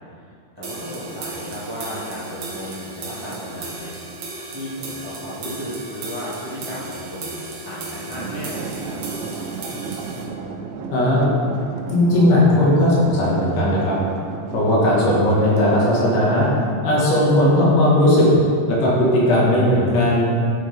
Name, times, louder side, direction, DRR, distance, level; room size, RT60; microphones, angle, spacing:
voice 1, 0.5-3.9 4.5-9.0, equal, 30° right, -9 dB, 0.4 m, -33 dB
sound 1, 0.6-10.2, right 2 dB, 60° right, 2.0 m, -35 dB
sound 2, 8.1-16.7, right 5 dB, 85° right, 3.0 m, -32 dB
voice 2, 10.9-11.2 11.9-14.0 14.5-16.5 16.8-18.3 18.7-20.3, left 1 dB, 65° left, -6 dB, 3.8 m, -17 dB
11.0 x 8.7 x 3.7 m, 2.3 s
omnidirectional pair, 5.2 m